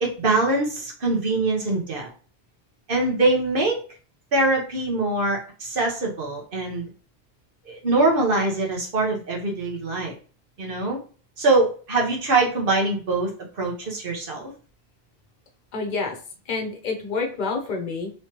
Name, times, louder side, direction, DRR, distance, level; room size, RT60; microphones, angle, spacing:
voice 1, 0.0-2.1 2.9-3.8 4.3-6.9 7.6-10.1 10.6-11.0 11.4-13.3 13.6-14.5, right 2 dB, 60° right, -1 dB, 1.2 m, -23 dB
voice 2, 15.7-16.2 16.5-18.1, left 4 dB, 50° left, 3 dB, 0.9 m, -28 dB
3.2 x 3.1 x 2.9 m, 0.39 s
omnidirectional pair, 1.0 m